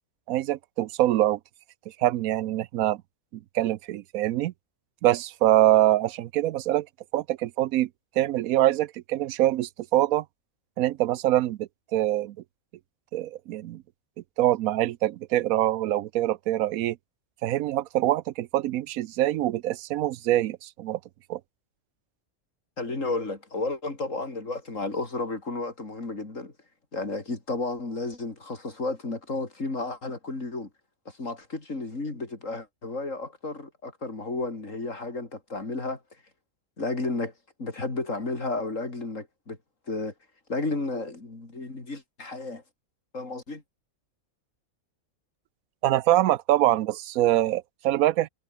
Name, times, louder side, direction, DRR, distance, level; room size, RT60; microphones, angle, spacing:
voice 1, 0.3-1.4 1.9-3.0 3.5-4.5 5.0-6.9 7.1-7.9 8.2-10.2 10.8-12.3 13.1-13.8 14.4-17.0 17.4-21.0 21.3-21.4 45.8-48.3, right 14 dB, 80° right, 1.0 m, -24 dB
voice 2, 22.8-26.5 26.9-30.7 31.1-36.0 36.8-37.3 37.6-39.6 39.9-40.1 40.5-42.6 43.1-43.6, left 3 dB, 60° left, 4.4 m, -32 dB
omnidirectional pair, 1.5 m